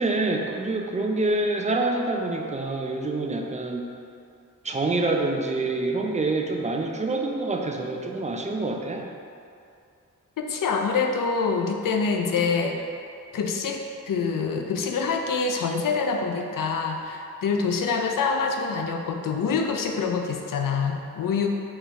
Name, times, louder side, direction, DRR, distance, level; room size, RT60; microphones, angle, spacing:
voice 1, 0.0-3.8 4.6-9.1 12.4-12.5, right 2 dB, 20° right, 1 dB, 0.5 m, -26 dB
voice 2, 10.4-12.8 13.3-21.5, left 5 dB, 80° left, 3 dB, 0.5 m, -26 dB
4.3 x 3.3 x 3.5 m, 2.5 s
cardioid pair, 65°, 32 cm